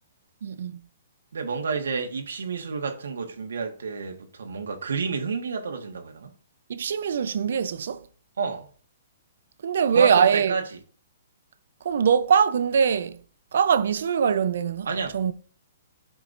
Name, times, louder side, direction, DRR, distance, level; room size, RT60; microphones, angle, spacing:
voice 1, 0.4-0.8 6.7-8.1 9.6-10.6 11.8-13.2 13.5-14.9 15.1-15.3, right 7 dB, 70° right, 0.7 m, -22 dB
voice 2, 1.3-6.3 8.4-8.7 9.9-10.6 14.8-15.3, right 5 dB, 85° right, 1.4 m, -30 dB
11.5 x 4.8 x 2.6 m
hypercardioid pair, 150°, 0 cm